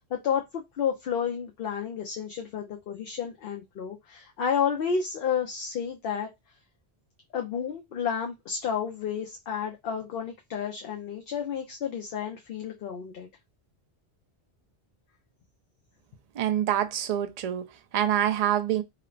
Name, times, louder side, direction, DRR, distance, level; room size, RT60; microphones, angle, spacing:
voice 1, 0.0-6.3 7.3-13.3, left 7 dB, 65° left, 0.8 m, -31 dB
voice 2, 16.3-18.8, right 11 dB, 55° right, 0.4 m, -26 dB
3.0 x 2.0 x 2.4 m
omnidirectional pair, 1.1 m